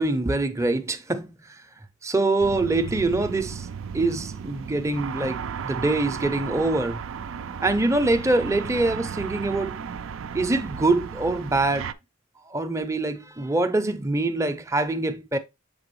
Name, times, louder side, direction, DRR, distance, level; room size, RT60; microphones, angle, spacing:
voice 1, 0.0-1.6 2.0-3.7 3.9-7.0 7.6-9.8 10.3-11.9 12.5-15.4, right 2 dB, 15° right, 0.5 m, -24 dB
sound 1, 2.4-11.9, right 6 dB, 70° right, 0.4 m, -35 dB
6.8 x 4.7 x 3.1 m
head